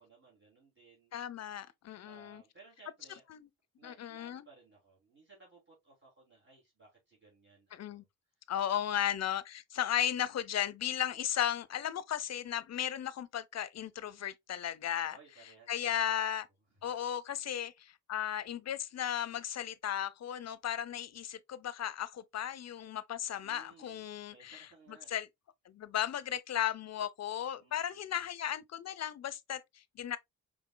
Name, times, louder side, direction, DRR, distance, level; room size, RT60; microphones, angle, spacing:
voice 1, 0.0-1.1 2.0-3.3 3.8-8.1 15.1-16.3 23.4-25.1 27.6-28.2, right 4 dB, 30° right, 2.6 m, -60 dB
voice 2, 1.1-2.4 3.3-3.4 3.8-4.4 7.7-8.0 8.5-15.2 15.7-16.5 16.8-24.6 25.1-25.3 25.7-30.2, left 10 dB, 45° left, 0.6 m, -35 dB
5.0 x 3.6 x 2.2 m
supercardioid pair, 65°, 36 cm